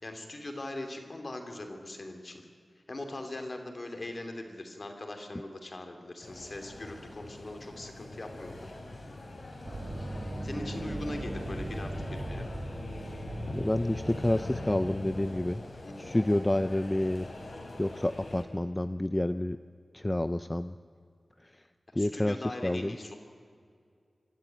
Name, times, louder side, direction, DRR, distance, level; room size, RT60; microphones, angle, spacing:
voice 1, 0.0-2.4 2.9-8.7 10.4-12.5 15.8-16.2 21.9-23.2, left 1 dB, 50° left, 4 dB, 2.9 m, -41 dB
sound 1, 6.2-18.4, left 2 dB, 70° left, 3.9 m, -44 dB
sound 2, 9.4-15.7, left 1 dB, 85° left, 4.7 m, -42 dB
Low hum growing into bass rumble, 9.6-15.2, right 2 dB, 70° right, 2.0 m, -40 dB
voice 2, 13.5-15.6 16.0-19.6 19.9-20.7 21.4-21.6 21.9-23.0, left 1 dB, 20° left, 11 dB, 0.5 m, -29 dB
25.0 x 13.0 x 9.0 m, 2.2 s
wide cardioid pair, 80°, 0 cm